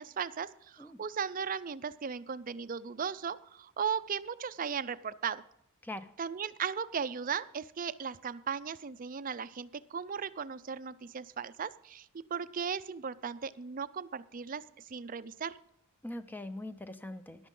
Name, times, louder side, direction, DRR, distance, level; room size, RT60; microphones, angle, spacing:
voice 1, 0.0-5.4 6.2-15.6, right 6 dB, 40° right, 15 dB, 0.5 m, -37 dB
voice 2, 5.8-6.1 16.0-17.5, left 1 dB, 10° left, 11 dB, 0.6 m, -42 dB
14.0 x 11.0 x 3.8 m, 0.74 s
head